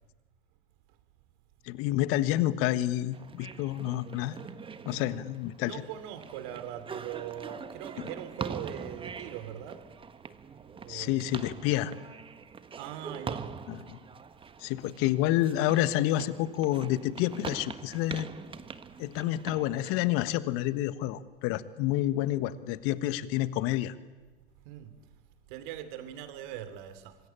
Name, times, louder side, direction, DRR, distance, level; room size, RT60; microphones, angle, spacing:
voice 1, 1.6-4.4 4.8-5.8 10.9-11.9 13.7-14.0 14.6-18.3 19.0-23.9, left 14 dB, 50° left, 1.5 m, -29 dB
sound 1, 3.1-20.0, right 5 dB, 20° right, 1.3 m, -43 dB
voice 2, 4.9-5.3 5.6-9.9 10.7-11.5 12.8-13.5 24.6-25.0 25.5-27.2, right 10 dB, 55° right, 2.9 m, -41 dB
25.5 x 21.0 x 9.1 m
hypercardioid pair, 95°, 29 cm